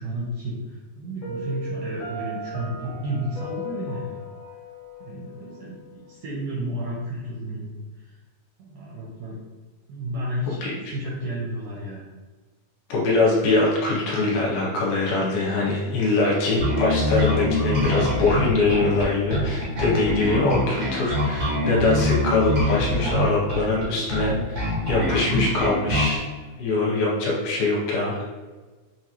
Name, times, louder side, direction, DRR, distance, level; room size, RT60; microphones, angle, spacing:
voice 1, 0.0-4.2 5.0-7.7 8.0-8.1 8.6-9.4 9.9-10.6 10.9-12.0, right 1 dB, 80° right, -4 dB, 1.8 m, -32 dB
Piano, 1.2-6.2, left 1 dB, 60° left, 1.8 m, -37 dB
voice 2, 12.9-26.2 26.6-28.3, left 2 dB, 80° left, -3 dB, 2.5 m, -23 dB
Bass guitar, 16.6-26.2, left 1 dB, 65° right, 0.9 m, -24 dB
6.3 x 2.5 x 2.9 m, 1.3 s
omnidirectional pair, 4.5 m